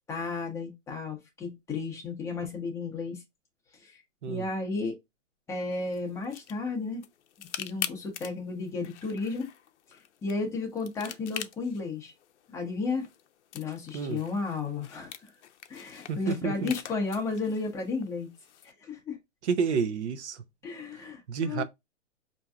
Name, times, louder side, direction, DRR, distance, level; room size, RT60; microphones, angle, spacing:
voice 1, 0.1-3.2 3.8-4.0 4.3-5.0 5.5-7.0 7.4-9.5 10.2-12.1 12.5-13.1 13.5-15.1 15.7-18.3 18.6-19.2 20.6-21.6, left 4 dB, 10° left, 0.7 m, -33 dB
sound 1, 5.7-18.7, left 10 dB, 65° left, 0.6 m, -44 dB
voice 2, 16.1-16.7 19.4-20.4 21.3-21.6, right 5 dB, 60° right, 0.7 m, -29 dB
4.5 x 2.7 x 2.3 m
hypercardioid pair, 140°, 38 cm